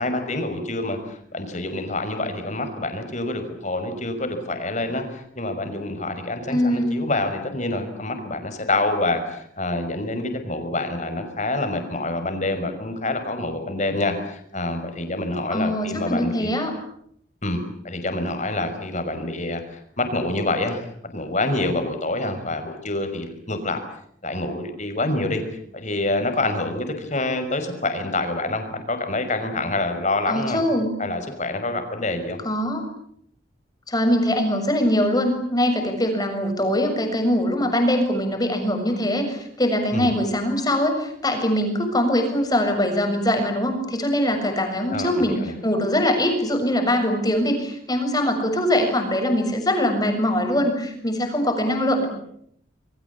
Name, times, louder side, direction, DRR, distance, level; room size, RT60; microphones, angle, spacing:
voice 1, 0.0-16.5 17.4-20.8 21.1-23.8 24.2-25.4 25.7-30.6 31.0-32.4 39.9-40.1 44.9-45.5, left 2 dB, 40° left, 7 dB, 5.6 m, -27 dB
voice 2, 6.5-7.0 15.5-16.7 30.3-31.0 32.4-32.8 33.9-52.1, left 1 dB, 20° left, 4 dB, 6.9 m, -22 dB
28.0 x 23.5 x 8.5 m, 0.69 s
head